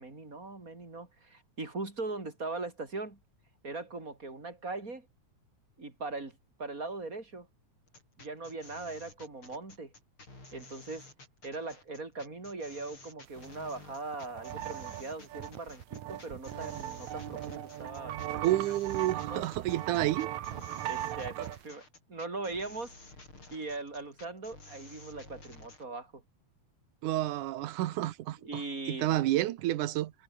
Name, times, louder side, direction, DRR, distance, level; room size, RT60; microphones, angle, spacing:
voice 1, 0.0-3.2 3.6-5.1 5.8-7.5 8.2-9.9 10.5-11.1 11.4-18.4 19.3-19.5 20.9-21.8 22.1-22.9 23.5-26.2 28.4-29.3, right 3 dB, 25° right, 5.4 m, -40 dB
sound 1, 7.9-25.9, left 2 dB, 40° left, 8.3 m, -52 dB
sound 2, 13.8-13.9 14.1-21.7, right 12 dB, 75° right, 2.5 m, -38 dB
voice 2, 18.4-20.3 27.0-28.6 28.9-30.1, right 14 dB, 90° right, 2.5 m, -30 dB
omnidirectional pair, 3.4 m